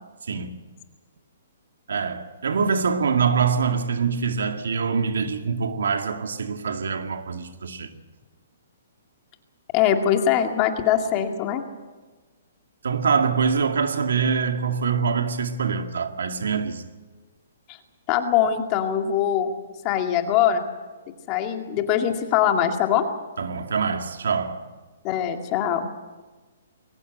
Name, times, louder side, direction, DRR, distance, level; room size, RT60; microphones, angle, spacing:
voice 1, 1.9-7.9 12.8-16.9 23.4-24.6, right 5 dB, 85° right, 2.2 m, -24 dB
voice 2, 9.7-11.6 17.7-17.8 18.1-19.5 19.8-20.6 21.3-23.1 25.0-25.9, left 9 dB, 25° left, 2.1 m, -22 dB
22.0 x 18.0 x 8.2 m
hypercardioid pair, 160°, 0 cm